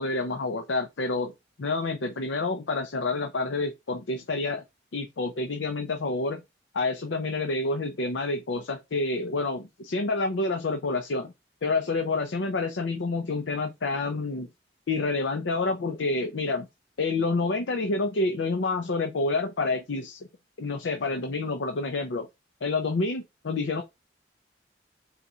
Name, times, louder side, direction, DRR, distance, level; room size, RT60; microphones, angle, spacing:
voice 1, 0.0-1.3 1.6-4.6 4.9-6.4 6.7-11.3 11.6-14.5 14.9-16.7 17.0-20.3 20.6-22.3 22.6-23.8, left 3 dB, 85° left, 0.6 m, -28 dB
4.2 x 4.0 x 2.4 m
head